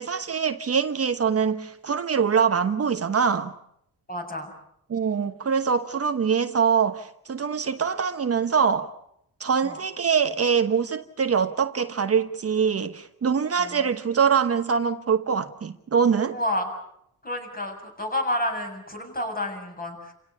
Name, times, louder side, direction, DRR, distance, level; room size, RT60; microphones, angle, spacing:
voice 1, 0.0-3.5 4.9-8.9 9.4-16.4, right 6 dB, 40° right, 1.1 m, -24 dB
voice 2, 4.1-4.5 9.6-9.8 13.6-13.9 16.3-16.7 17.2-20.1, left 1 dB, 25° left, 7.5 m, -30 dB
29.5 x 17.0 x 8.5 m
cardioid pair, 105°, 37 cm